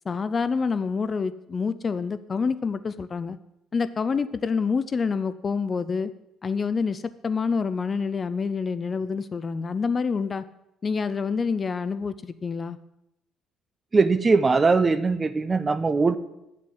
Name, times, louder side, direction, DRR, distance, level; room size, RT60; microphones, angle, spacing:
voice 1, 0.1-3.4 3.7-6.1 6.4-10.5 10.8-12.8, left 5 dB, 30° left, 14 dB, 0.4 m, -27 dB
voice 2, 13.9-16.1, right 4 dB, 20° right, 12 dB, 0.7 m, -21 dB
10.5 x 7.4 x 7.8 m, 0.87 s
cardioid pair, 135°, 0 cm